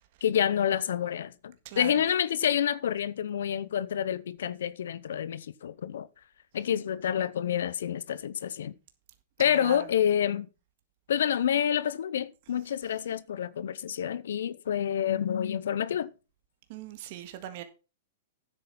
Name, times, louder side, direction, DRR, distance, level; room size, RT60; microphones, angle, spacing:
voice 1, 0.2-6.1 6.5-8.7 9.4-10.5 11.1-16.1, left 9 dB, 75° left, 0.7 m, -28 dB
voice 2, 9.5-9.8 16.7-17.6, right 11 dB, 55° right, 1.7 m, -40 dB
10.0 x 8.1 x 5.5 m
hypercardioid pair, 125°, 0 cm